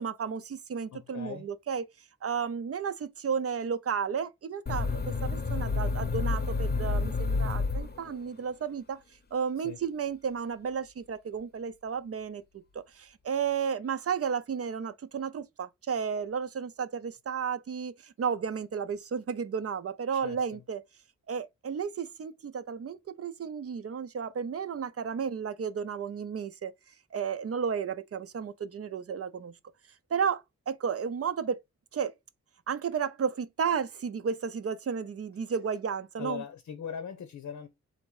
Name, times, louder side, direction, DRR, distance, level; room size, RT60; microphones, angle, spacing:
voice 1, 0.0-1.8 2.2-9.0 9.3-12.4 12.7-20.8 21.3-26.7 27.1-29.5 30.1-31.6 31.9-32.1 32.7-36.4, right 6 dB, 55° right, 0.5 m, -33 dB
voice 2, 0.9-1.5 9.6-9.8 20.1-20.6 36.2-37.7, left 8 dB, 85° left, 0.8 m, -40 dB
sound 1, 4.7-8.4, left 4 dB, 35° left, 0.7 m, -29 dB
4.1 x 2.7 x 4.7 m
wide cardioid pair, 110°, 29 cm